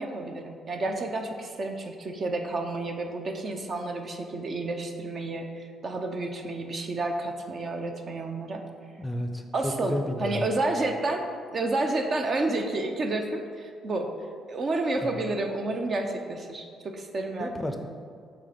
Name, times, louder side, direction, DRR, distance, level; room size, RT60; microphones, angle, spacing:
voice 1, 0.0-8.6 9.5-11.3 11.5-14.1 14.5-17.8, right 2 dB, 45° right, 4 dB, 0.6 m, -30 dB
voice 2, 9.0-10.5 15.0-15.2 17.4-17.8, left 1 dB, 10° left, 5 dB, 0.5 m, -32 dB
6.3 x 3.3 x 5.1 m, 2.2 s
cardioid pair, 90°, 0 cm